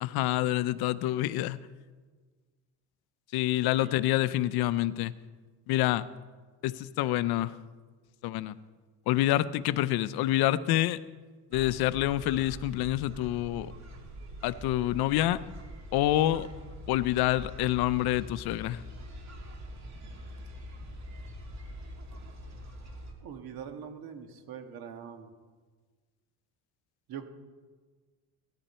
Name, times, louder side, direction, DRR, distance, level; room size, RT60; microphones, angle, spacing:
voice 1, 0.0-1.6 3.3-5.1 5.7-6.0 6.6-7.6 8.2-8.6 9.1-11.0 11.5-13.7 14.4-15.4 15.9-16.5 16.9-18.8, left 15 dB, 65° left, 15 dB, 0.7 m, -27 dB
sound 1, 11.5-23.1, equal, 40° right, 2.7 m, -44 dB
voice 2, 23.2-25.3 27.1-27.3, right 8 dB, 60° right, 6 dB, 1.7 m, -42 dB
18.0 x 13.5 x 4.4 m, 1.5 s
cardioid pair, 140°, 40 cm